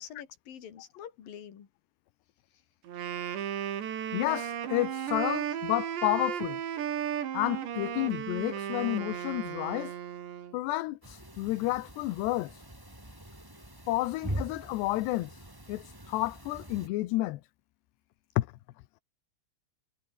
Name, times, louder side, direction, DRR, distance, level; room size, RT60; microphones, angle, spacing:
voice 1, 0.0-1.7, left 9 dB, 55° left, 4.3 m, -46 dB
Wind instrument woodwind instrument, 2.9-10.6, right 9 dB, 85° right, 5.0 m, -35 dB
voice 2, 4.1-6.6 7.3-9.9 10.5-12.5 13.9-15.3 15.7-17.4 18.4-18.5, left 17 dB, 80° left, 3.1 m, -30 dB
sound 1, 11.0-16.9, right 1 dB, 5° right, 3.2 m, -42 dB
omnidirectional pair, 4.9 m